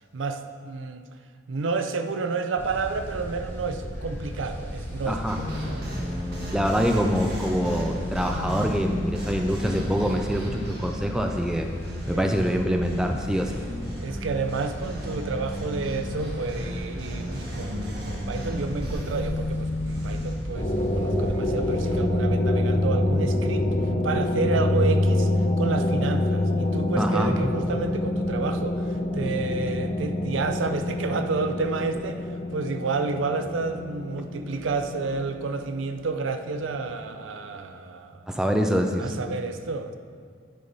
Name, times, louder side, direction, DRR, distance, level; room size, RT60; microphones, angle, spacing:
voice 1, 0.1-1.0 1.5-5.9 12.0-12.4 14.0-23.7 24.0-25.3 25.6-32.2 32.5-38.3 39.0-40.0, right 4 dB, 85° right, 8 dB, 0.5 m, -30 dB
sound 1, 2.6-22.0, equal, 10° left, 1.3 m, -35 dB
voice 2, 5.1-5.4 6.5-11.7 12.1-13.6 27.0-27.3 38.3-39.1, equal, 5° right, 3 dB, 0.4 m, -25 dB
sound 2, 5.3-20.3, left 1 dB, 55° right, 1.5 m, -34 dB
sound 3, 20.5-36.8, left 1 dB, 35° left, 0.8 m, -26 dB
9.6 x 4.1 x 5.3 m, 2.1 s
head